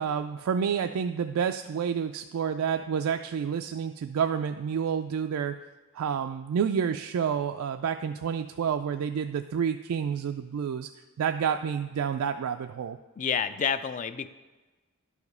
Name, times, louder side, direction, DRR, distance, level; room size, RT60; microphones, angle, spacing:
voice 1, 0.0-5.6 5.9-10.9 11.2-13.0, right 7 dB, 70° right, 7 dB, 0.3 m, -29 dB
voice 2, 13.2-14.3, left 7 dB, 35° left, 13 dB, 0.3 m, -29 dB
11.5 x 4.9 x 5.4 m, 1.2 s
head